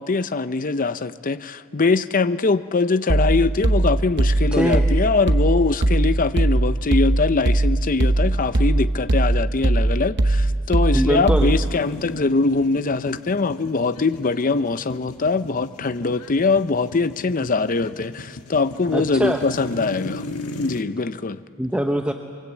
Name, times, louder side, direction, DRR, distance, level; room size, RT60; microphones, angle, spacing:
voice 1, 0.0-20.2 20.6-21.4, left 3 dB, 40° left, 0.6 m, -22 dB
sound 1, 3.1-11.8, right 1 dB, 50° right, 0.9 m, -20 dB
voice 2, 4.4-4.8 10.9-11.5 18.9-19.4 21.6-22.1, right 1 dB, 5° right, 0.7 m, -22 dB
sound 2, 11.3-20.8, left 2 dB, 85° left, 1.5 m, -37 dB
24.0 x 24.0 x 8.3 m
head